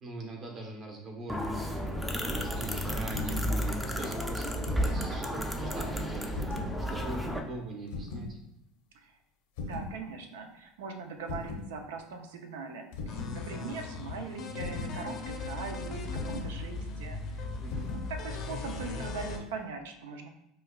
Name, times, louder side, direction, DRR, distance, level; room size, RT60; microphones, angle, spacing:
voice 1, 0.0-6.5 6.9-8.4 17.6-18.0, right 2 dB, 40° right, 2 dB, 0.9 m, -42 dB
sound 1, 1.3-7.4, equal, 5° right, 0.4 m, -32 dB
Piano - Dead Key - Single Short, 3.1-3.6 4.4-5.2 6.3-6.8 7.9-8.3 9.6-9.9 11.3-11.7 12.9-13.4 14.6-15.0 16.1-16.5 17.7-18.1, left 3 dB, 85° left, 0.8 m, -38 dB
voice 2, 9.6-17.4 17.9-20.3, right 4 dB, 90° right, 5 dB, 0.5 m, -41 dB
sound 2, 13.1-19.4, left 3 dB, 45° left, 0.6 m, -38 dB
5.0 x 2.3 x 2.3 m, 0.84 s
supercardioid pair, 115°, 0 cm